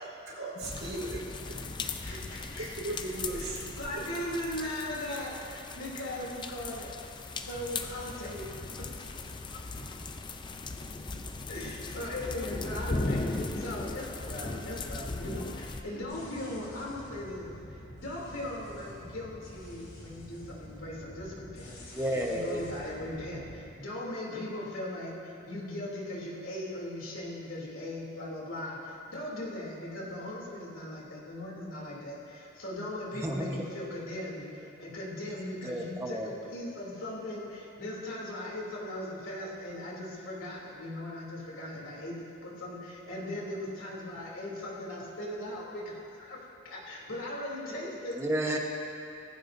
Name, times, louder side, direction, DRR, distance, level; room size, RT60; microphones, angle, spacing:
voice 1, 0.0-2.2 2.5-4.0, right 2 dB, 80° right, -4 dB, 3.7 m, -38 dB
sound 1, 0.6-15.8, left 3 dB, 20° left, 0.5 m, -38 dB
voice 2, 1.8-2.7 3.3-6.9 7.3-8.5 8.8-10.0 11.5-21.8 22.3-46.4 46.6-48.2, left 1 dB, 75° left, -4 dB, 2.9 m, -39 dB
sound 2, 16.0-23.6, equal, 50° left, 3.3 m, -48 dB
voice 3, 21.9-22.6 33.2-33.6 35.6-36.3 48.2-48.6, right 1 dB, 15° right, 0 dB, 1.1 m, -31 dB
18.5 x 15.0 x 2.7 m, 2.6 s
head